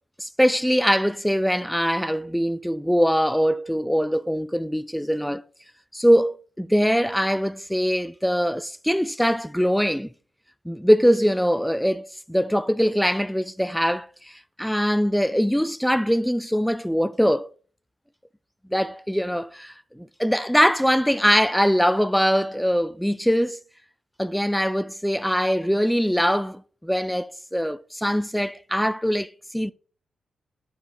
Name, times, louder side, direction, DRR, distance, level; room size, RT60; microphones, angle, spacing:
voice 1, 0.2-5.4 5.9-10.1 10.7-17.5 18.7-23.6 24.2-29.7, equal, ahead, 0.3 m, -22 dB
11.5 x 4.8 x 3.8 m
cardioid pair, 75°, 0 cm